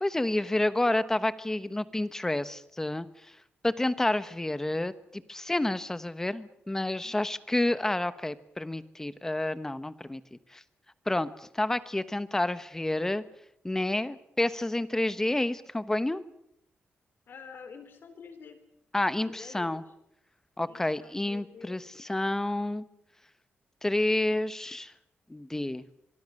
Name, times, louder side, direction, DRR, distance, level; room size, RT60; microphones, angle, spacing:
voice 1, 0.0-3.4 3.6-10.6 11.1-13.2 13.6-16.2 18.9-19.8 20.6-22.8 23.8-24.9 25.3-25.8, left 1 dB, 10° left, 14 dB, 1.1 m, -29 dB
voice 2, 17.3-18.6 19.2-19.8 20.7-21.8, left 5 dB, 60° left, 10 dB, 3.8 m, -48 dB
24.5 x 24.0 x 6.6 m, 0.79 s
wide cardioid pair, 140°, 4 cm